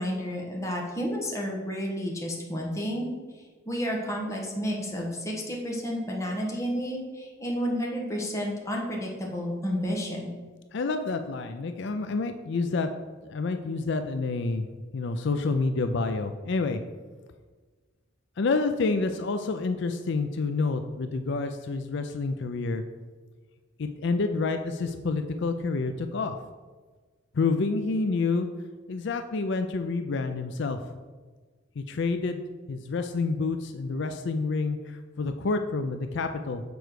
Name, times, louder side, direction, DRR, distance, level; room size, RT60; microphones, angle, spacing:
voice 1, 0.0-3.1 3.6-10.3, equal, 15° left, -2 dB, 1.2 m, -31 dB
voice 2, 10.7-12.9 13.2-16.8 18.4-22.8 23.8-26.4 27.3-28.5 28.9-30.8 31.8-32.4 32.7-36.6, left 3 dB, 60° left, 7 dB, 0.4 m, -28 dB
6.9 x 4.6 x 6.3 m, 1.4 s
head